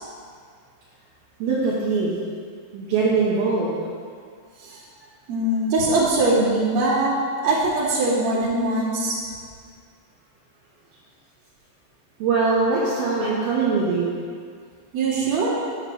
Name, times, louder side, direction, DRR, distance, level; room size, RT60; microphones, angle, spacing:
voice 1, 1.4-2.2 2.7-3.8 12.2-14.1, right 4 dB, 70° right, -6 dB, 2.4 m, -22 dB
voice 2, 5.3-7.1 7.4-9.2 14.9-15.5, right 2 dB, 40° right, -8 dB, 2.9 m, -21 dB
14.0 x 9.4 x 3.1 m, 2.1 s
omnidirectional pair, 6.0 m